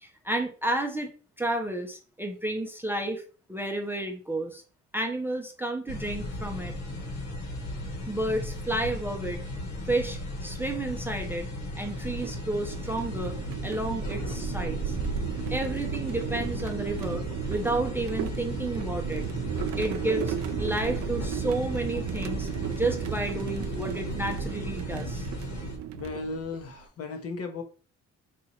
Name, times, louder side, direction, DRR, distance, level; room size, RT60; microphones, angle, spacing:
voice 1, 0.0-1.1 1.4-3.2 3.5-4.6 4.9-6.7 8.1-9.4 9.9-11.5 11.7-13.4 13.6-15.0 15.5-19.2 19.8-25.3, right 1 dB, 5° right, 3 dB, 0.6 m, -31 dB
sound 1, 5.9-25.8, left 1 dB, 70° left, 1.3 m, -36 dB
sound 2, 11.8-26.8, right 10 dB, 70° right, 0.4 m, -35 dB
voice 2, 25.9-27.6, left 4 dB, 55° left, 5 dB, 0.8 m, -35 dB
3.0 x 2.4 x 4.1 m, 0.38 s
cardioid pair, 90°, 30 cm